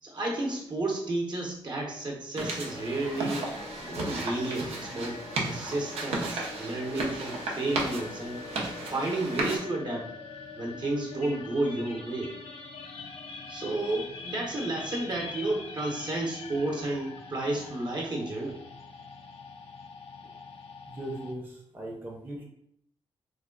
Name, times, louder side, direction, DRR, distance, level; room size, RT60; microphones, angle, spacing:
voice 1, 0.0-3.4 3.8-8.4 8.8-10.1 10.5-12.3 13.5-18.6, right 2 dB, 45° right, -1 dB, 1.0 m, -32 dB
sound 1, 2.4-9.6, right 2 dB, 85° right, 0.7 m, -34 dB
sound 2, 2.7-21.3, left 4 dB, 75° left, 0.6 m, -44 dB
voice 2, 20.9-22.4, right 1 dB, 20° right, -2 dB, 0.8 m, -39 dB
3.3 x 2.2 x 3.8 m, 0.72 s
cardioid pair, 75°, 10 cm